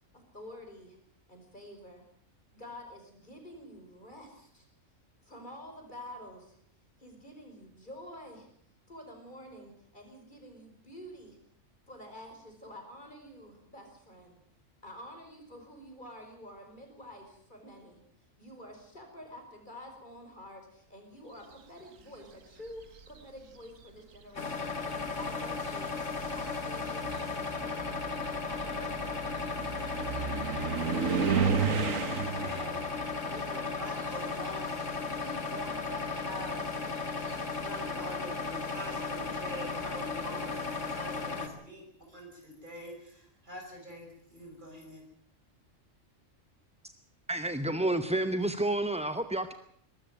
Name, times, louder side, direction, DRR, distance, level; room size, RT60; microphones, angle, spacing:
voice 1, 0.1-1.0 1.3-2.0 2.5-4.7 5.2-6.6 7.0-8.5 8.9-11.4 11.9-14.4 14.8-18.0 18.4-24.8 25.2-25.9 26.3-27.6 28.4-29.2, equal, 35° left, 3 dB, 5.3 m, -48 dB
sound 1, 22.7-23.2 24.2-24.3 24.9-34.8 35.1-37.7, right 6 dB, 90° right, 1.7 m, -34 dB
sound 2, 24.4-41.5, left 4 dB, 70° left, 2.4 m, -35 dB
voice 2, 32.1-37.1 37.6-45.0, equal, 40° right, 2 dB, 6.6 m, -45 dB
voice 3, 47.3-49.5, right 1 dB, 5° right, 9 dB, 0.6 m, -30 dB
22.0 x 13.0 x 9.2 m, 0.67 s
omnidirectional pair, 1.3 m